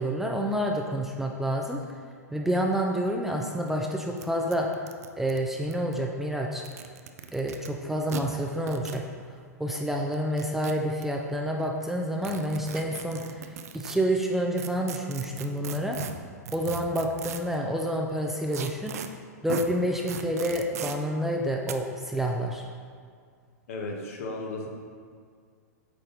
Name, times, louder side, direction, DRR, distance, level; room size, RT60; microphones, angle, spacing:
voice 1, 0.0-1.8 2.3-4.7 5.2-6.6 7.3-9.1 9.6-13.4 13.7-16.0 16.5-18.9 19.4-22.7, equal, 5° right, 0 dB, 0.5 m, -28 dB
sound 1, 3.4-3.5 3.7-3.8 4.2-4.3 4.5-5.9 6.5-7.7 8.1-8.2 8.7-9.0 10.1-11.0 12.2-14.0 14.6-17.6 18.5-19.1 19.5-19.7 20.1-21.0 21.7-21.8, right 8 dB, 60° right, 0.5 m, -37 dB
voice 2, 23.7-24.7, left 2 dB, 55° left, 1 dB, 1.2 m, -34 dB
8.3 x 3.9 x 3.8 m, 2.1 s
figure-of-eight pair, 105°, 9 cm